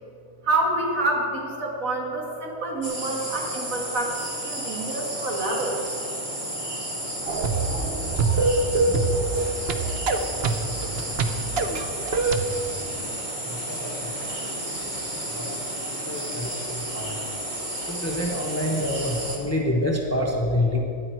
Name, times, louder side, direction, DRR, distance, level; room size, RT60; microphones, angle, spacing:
voice 1, 0.4-5.8, right 2 dB, 75° right, -1 dB, 2.3 m, -27 dB
sound 1, 2.8-19.4, right 1 dB, 35° right, 1.8 m, -32 dB
sound 2, 7.3-12.4, right 3 dB, 55° right, 0.9 m, -24 dB
voice 2, 7.7-8.5 8.8-9.8 13.7-13.9 14.2-14.5 15.3-15.5 16.1-17.1 17.9-20.8, left 1 dB, 10° left, 0 dB, 1.1 m, -28 dB
14.0 x 10.0 x 4.6 m, 2.6 s
omnidirectional pair, 1.4 m